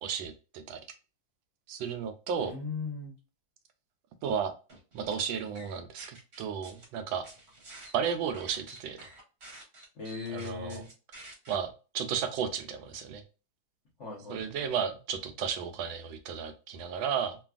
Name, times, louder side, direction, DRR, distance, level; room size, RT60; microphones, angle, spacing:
voice 1, 0.0-0.8 1.7-2.5 4.2-4.5 4.9-7.2 7.9-9.1 10.3-10.8 11.5-13.2 14.3-17.4, right 7 dB, 80° right, 7 dB, 1.3 m, -33 dB
voice 2, 2.4-3.1 9.9-10.9 14.0-14.4, left 4 dB, 50° left, -3 dB, 0.9 m, -38 dB
sound 1, 4.7-5.1 5.5-6.9 7.2-11.5, right 1 dB, 40° right, 1.0 m, -49 dB
3.3 x 2.3 x 2.3 m, 0.32 s
omnidirectional pair, 2.2 m